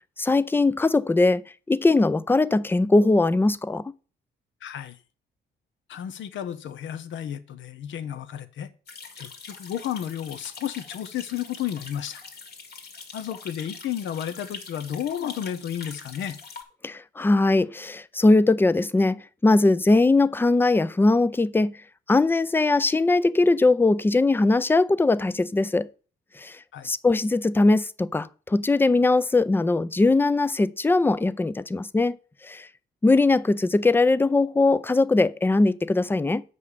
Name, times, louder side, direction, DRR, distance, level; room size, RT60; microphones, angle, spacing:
voice 1, 0.2-1.4 1.7-3.9 16.8-21.7 22.1-25.9 26.4-26.6 26.8-32.2 32.4-32.7 33.0-36.4, left 2 dB, 10° left, 0.4 m, -20 dB
voice 2, 4.6-5.0 5.9-8.7 9.2-12.2 13.1-16.4 26.7-26.9, left 10 dB, 75° left, 0.9 m, -32 dB
sound 1, 8.9-16.6, left 5 dB, 55° left, 1.9 m, -43 dB
6.6 x 5.4 x 6.7 m
cardioid pair, 90°, 20 cm